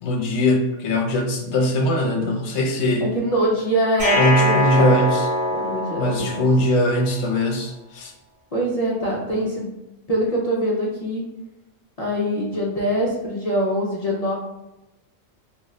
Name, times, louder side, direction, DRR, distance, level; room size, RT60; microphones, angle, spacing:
voice 1, 0.0-3.1 4.1-5.3 6.0-8.1, left 1 dB, 70° left, 3 dB, 0.9 m, -21 dB
voice 2, 3.0-4.9 5.5-6.5 8.5-9.7 10.1-11.2 12.0-14.3, equal, 45° left, -4 dB, 0.5 m, -23 dB
sound 1, 4.0-7.1, left 1 dB, 75° right, 1.1 m, -23 dB
2.6 x 2.1 x 3.6 m, 0.96 s
omnidirectional pair, 1.3 m